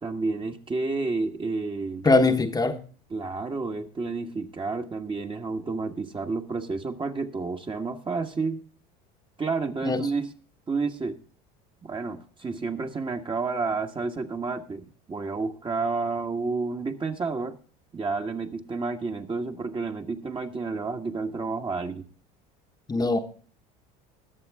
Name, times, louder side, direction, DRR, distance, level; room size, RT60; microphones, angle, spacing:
voice 1, 0.0-2.1 3.1-8.6 9.4-10.3 10.7-11.2 11.8-17.6 17.9-22.1, right 4 dB, 25° right, 1.5 m, -30 dB
voice 2, 2.0-2.8 9.8-10.1 22.9-23.2, left 3 dB, 20° left, 1.2 m, -21 dB
20.5 x 7.2 x 3.6 m
hypercardioid pair, 85°, 21 cm